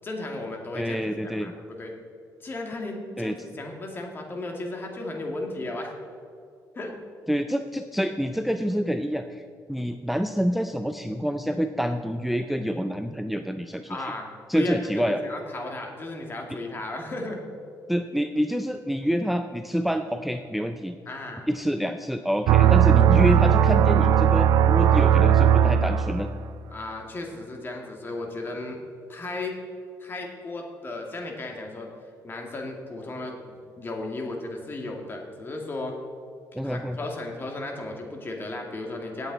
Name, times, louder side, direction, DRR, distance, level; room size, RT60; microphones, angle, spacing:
voice 1, 0.0-1.9 2.4-5.9 6.7-7.0 13.9-17.4 21.1-21.5 22.5-22.8 24.8-25.1 26.7-28.8 29.1-29.6 30.0-31.9 32.2-36.0 36.6-39.3, left 2 dB, 35° left, 1 dB, 2.3 m, -35 dB
voice 2, 0.7-1.5 3.2-3.3 7.3-9.4 9.7-14.1 14.5-15.2 17.9-21.0 21.5-26.3 36.5-37.0, equal, ahead, 7 dB, 0.4 m, -27 dB
sound 1, 22.5-26.4, right 9 dB, 80° right, 0.5 m, -18 dB
17.5 x 8.0 x 4.1 m, 2.4 s
cardioid pair, 115°, 7 cm